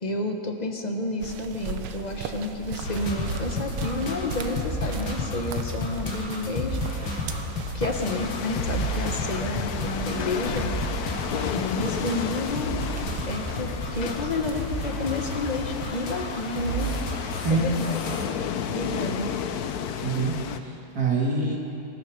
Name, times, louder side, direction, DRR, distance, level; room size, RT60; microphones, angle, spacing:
voice 1, 0.0-6.8 7.1-7.2 7.7-10.8 11.5-12.7 13.3-16.9 17.5-18.2 18.7-19.3, left 2 dB, 30° left, 3 dB, 0.9 m, -30 dB
sound 1, 1.2-17.2, right 7 dB, 85° right, 1.6 m, -39 dB
sound 2, 2.8-18.3, left 1 dB, 85° left, 2.5 m, -32 dB
sound 3, 7.9-20.6, left 8 dB, 65° left, 1.0 m, -32 dB
voice 2, 20.0-21.6, right 3 dB, 45° right, -3 dB, 3.0 m, -25 dB
19.0 x 14.0 x 5.2 m, 2.8 s
omnidirectional pair, 2.2 m